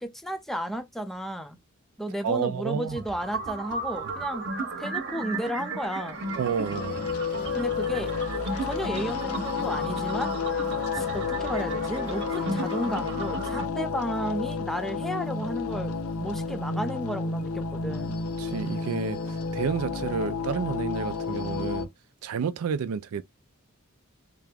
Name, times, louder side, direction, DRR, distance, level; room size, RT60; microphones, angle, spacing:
voice 1, 0.0-1.6 2.0-4.5 4.8-6.2 7.5-8.1 8.6-10.3 10.9-18.1, equal, ahead, 0.5 m, -33 dB
voice 2, 2.2-3.0 3.9-4.1 6.4-7.0 18.4-19.2 19.5-21.9 22.2-23.2, right 6 dB, 70° right, 0.4 m, -30 dB
sound 1, 2.9-13.7, right 3 dB, 55° right, 1.0 m, -35 dB
sound 2, 6.1-21.9, left 5 dB, 75° left, 0.7 m, -31 dB
3.4 x 2.9 x 3.4 m
head